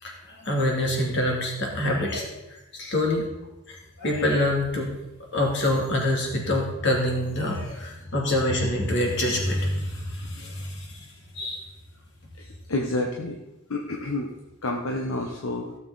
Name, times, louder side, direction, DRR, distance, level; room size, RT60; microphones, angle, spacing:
voice 1, 0.0-3.3 3.7-4.9 5.3-11.1 11.3-11.7, left 1 dB, 55° left, -1 dB, 2.7 m, -26 dB
voice 2, 12.4-13.4 13.7-14.3 14.6-15.7, left 2 dB, 75° left, 1 dB, 1.1 m, -29 dB
16.0 x 7.1 x 4.0 m, 0.97 s
head